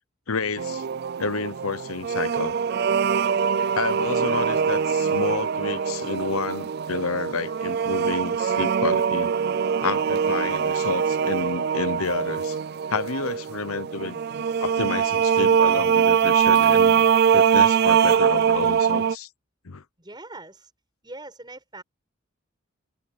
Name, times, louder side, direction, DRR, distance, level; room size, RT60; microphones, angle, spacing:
voice 1, 0.3-0.8 1.2-2.5 3.7-9.3 9.8-12.6 12.9-17.1 17.3-19.3 19.6-19.8, left 4 dB, 85° left, 0.9 m, -30 dB
sound 1, 0.6-19.1, right 7 dB, 50° right, 0.3 m, -22 dB
voice 2, 20.0-20.7 21.0-21.8, right 2 dB, 20° right, 7.4 m, -41 dB
head